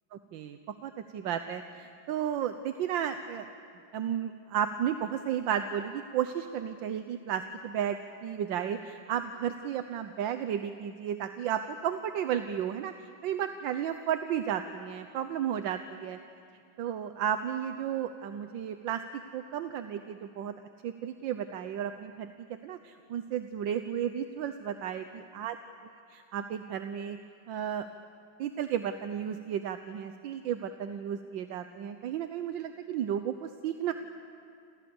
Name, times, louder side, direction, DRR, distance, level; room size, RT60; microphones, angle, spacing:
voice 1, 0.1-3.5 3.9-12.9 13.2-16.2 16.8-19.0 19.3-20.5 20.8-22.3 22.6-25.6 26.3-27.2 27.5-27.9 28.4-33.9, right 9 dB, 65° right, 8 dB, 1.4 m, -33 dB
29.0 x 27.5 x 7.1 m, 2.4 s
omnidirectional pair, 2.4 m